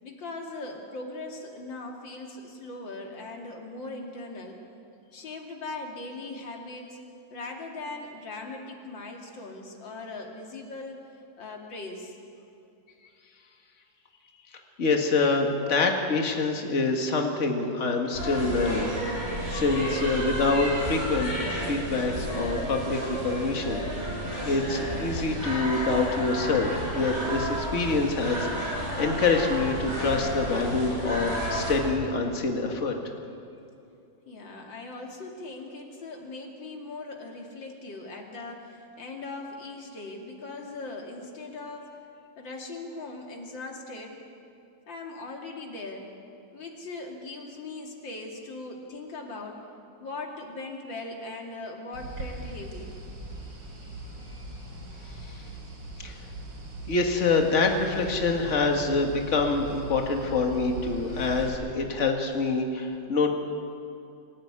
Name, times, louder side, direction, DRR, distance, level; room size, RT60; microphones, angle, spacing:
voice 1, 0.0-4.6 5.1-7.0 7.3-11.0 11.4-12.1 34.3-42.0 42.4-44.2 44.9-46.1 46.5-49.7 50.0-52.9 55.2-55.3, left 2 dB, 75° left, 1 dB, 3.2 m, -39 dB
voice 2, 14.8-18.9 19.5-21.3 21.6-23.8 24.4-33.0 55.4-55.5 56.0-56.2 56.9-63.3, left 3 dB, 40° left, 3 dB, 2.2 m, -26 dB
sound 1, 18.1-31.8, right 1 dB, 35° right, 7.2 m, -32 dB
sound 2, 51.9-61.5, right 2 dB, 80° right, 4.5 m, -40 dB
25.5 x 14.5 x 9.7 m, 2.6 s
omnidirectional pair, 2.1 m